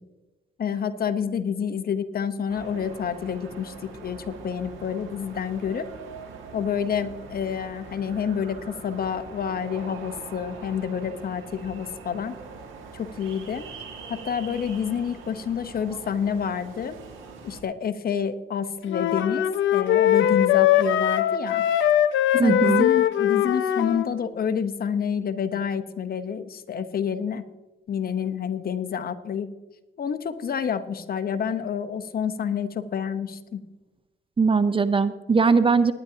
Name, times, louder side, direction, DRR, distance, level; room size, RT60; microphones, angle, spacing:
voice 1, 0.6-5.9 6.5-12.4 12.9-13.7 14.1-17.0 17.4-21.6 22.3-27.4 27.9-29.5 30.0-33.6, left 7 dB, 50° left, 9 dB, 1.0 m, -28 dB
sound 1, 2.5-17.6, right 5 dB, 85° right, 2.1 m, -42 dB
sound 2, 18.9-24.1, left 11 dB, 75° left, 0.7 m, -21 dB
voice 2, 22.4-22.9 34.4-35.9, right 4 dB, 25° right, 13 dB, 0.6 m, -20 dB
19.0 x 10.5 x 2.8 m, 1.1 s
cardioid pair, 90°, 20 cm